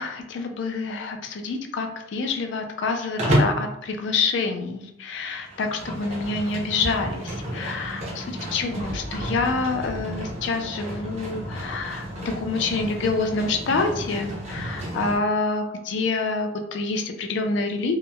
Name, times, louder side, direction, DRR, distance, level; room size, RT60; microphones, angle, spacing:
voice 1, 0.0-17.9, left 3 dB, 70° left, 5 dB, 0.3 m, -27 dB
Livestock farm animals working animals, 3.2-3.6 5.4-15.2, equal, 35° right, 0.6 m, -30 dB
2.8 x 2.0 x 2.2 m, 0.79 s
head